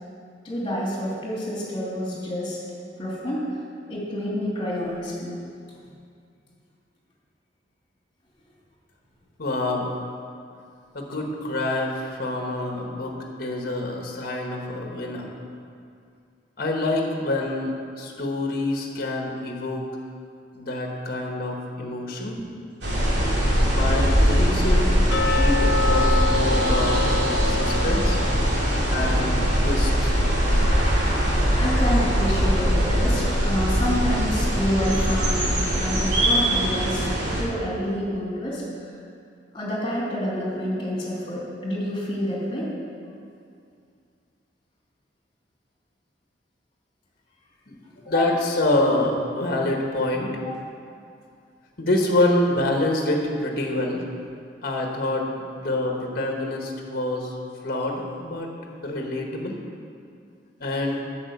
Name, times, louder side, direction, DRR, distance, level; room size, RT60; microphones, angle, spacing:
voice 1, 0.4-2.6 3.0-3.4 3.9-5.4 31.6-35.5 35.8-37.1 37.4-38.6 39.5-42.7 48.0-48.2 50.4-50.5, equal, 30° left, -5 dB, 2.8 m, -28 dB
voice 2, 9.4-9.9 10.9-15.3 16.6-19.8 20.5-22.4 23.7-27.1 27.4-28.2 28.9-30.1 47.7-47.8 48.0-50.4 51.8-54.0 54.6-57.3 57.6-58.5 58.8-59.6 60.6-61.0, left 2 dB, 55° left, 1 dB, 1.4 m, -26 dB
sound 1, 22.8-37.4, equal, 70° right, 2.5 m, -21 dB
sound 2, 25.1-32.0 32.2-32.3 32.9-33.0 33.5-33.6, left 3 dB, 85° left, 0.7 m, -29 dB
8.9 x 6.2 x 7.8 m, 2.4 s
head